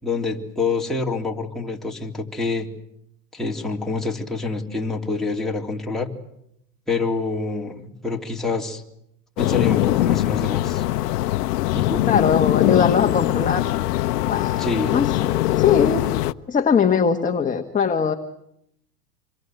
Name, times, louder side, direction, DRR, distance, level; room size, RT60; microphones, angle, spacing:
voice 1, 0.0-2.7 3.3-6.1 6.9-8.8 9.4-10.8 11.7-12.0 14.6-15.0, left 3 dB, ahead, -2 dB, 3.5 m, -26 dB
sound 1, 9.4-16.3, left 16 dB, 75° left, 0.9 m, -21 dB
voice 2, 12.1-13.7 14.2-16.0 16.5-18.1, left 6 dB, 15° left, 5 dB, 1.6 m, -21 dB
27.5 x 22.5 x 8.0 m, 0.79 s
hypercardioid pair, 105°, 48 cm